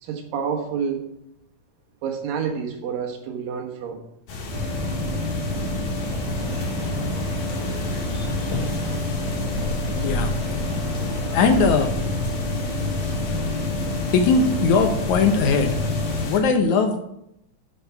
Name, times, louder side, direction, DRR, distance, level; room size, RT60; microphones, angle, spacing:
voice 1, 0.0-1.1 2.0-4.0, right 7 dB, 85° right, 3 dB, 3.1 m, -28 dB
sound 1, 4.3-16.4, left 2 dB, 90° left, 3.7 m, -30 dB
sound 2, 4.5-16.2, left 2 dB, 10° right, 2.0 m, -29 dB
sound 3, 6.4-11.7, left 2 dB, 50° left, 2.9 m, -41 dB
voice 2, 10.0-10.3 11.3-11.9 14.1-15.8 16.2-17.0, left 4 dB, 70° left, 6 dB, 2.0 m, -19 dB
10.5 x 7.2 x 4.6 m, 0.79 s
omnidirectional pair, 3.9 m